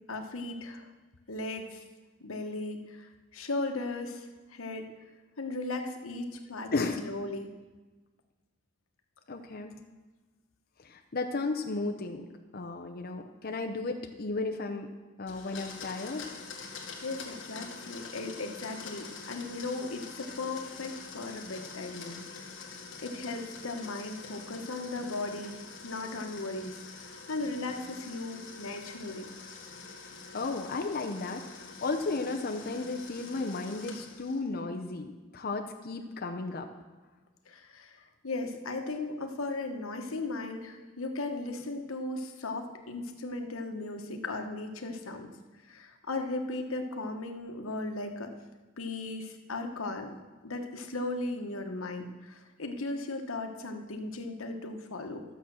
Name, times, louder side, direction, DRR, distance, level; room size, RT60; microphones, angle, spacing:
voice 1, 0.1-0.9 1.3-1.8 2.2-4.8 5.4-7.5 17.0-22.7 23.0-26.8 27.3-29.3 37.4-38.0 38.2-45.3 45.6-48.3 48.8-50.1 50.4-55.2, left 2 dB, 90° left, 5 dB, 1.2 m, -37 dB
voice 2, 6.7-7.0 9.3-9.8 10.8-12.3 12.5-14.9 15.2-16.3 30.3-36.7, left 3 dB, 45° left, 4 dB, 0.7 m, -34 dB
Domestic sounds home sounds, 15.3-34.5, left 4 dB, 65° left, 1.7 m, -45 dB
12.0 x 7.1 x 6.2 m, 1.2 s
head